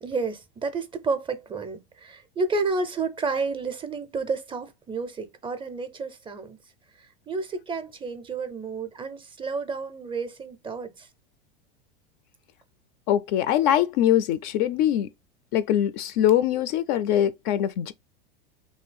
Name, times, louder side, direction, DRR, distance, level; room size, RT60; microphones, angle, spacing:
voice 1, 0.0-6.6 7.0-11.1, right 4 dB, 15° right, 0.5 m, -31 dB
voice 2, 13.1-15.1 15.5-17.9, left 11 dB, 50° left, 0.4 m, -22 dB
2.9 x 2.7 x 3.3 m
hypercardioid pair, 90°, 29 cm